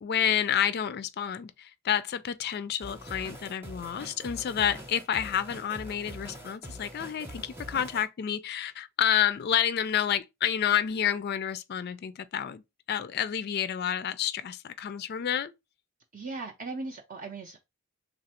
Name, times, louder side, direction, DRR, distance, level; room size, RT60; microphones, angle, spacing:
voice 1, 0.0-12.6 12.9-15.5, left 9 dB, 45° left, 0.3 m, -29 dB
sound 1, 2.8-8.0, equal, 10° right, 0.7 m, -44 dB
voice 2, 16.1-17.6, right 3 dB, 35° right, 0.4 m, -38 dB
3.3 x 2.5 x 4.1 m
head